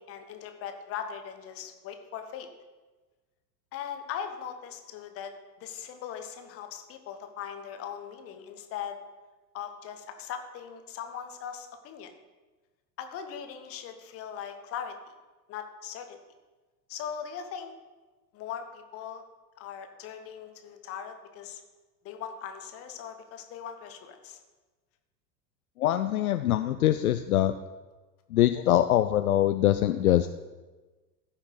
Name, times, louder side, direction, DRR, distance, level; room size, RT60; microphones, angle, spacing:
voice 1, 0.0-2.5 3.7-5.3 5.6-9.0 9.5-12.1 13.0-15.0 15.5-16.2 16.9-17.7 18.3-19.2 19.6-21.6 22.0-24.4 26.2-26.3, left 8 dB, 30° left, 7 dB, 1.0 m, -39 dB
voice 2, 25.8-27.5 28.3-30.3, left 13 dB, 60° left, 10 dB, 0.5 m, -23 dB
14.5 x 5.8 x 3.9 m, 1.2 s
figure-of-eight pair, 85°, 49 cm